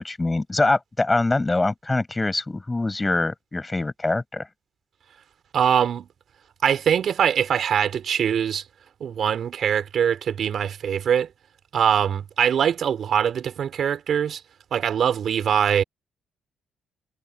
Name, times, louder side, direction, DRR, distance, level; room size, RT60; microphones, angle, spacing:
voice 1, 0.0-4.5, left 2 dB, 20° left, 5.9 m, -24 dB
voice 2, 5.5-6.1 6.6-8.6 9.0-11.3 11.7-14.4 14.7-15.8, right 8 dB, 60° right, 4.3 m, -22 dB
cardioid pair, 90°, 0 cm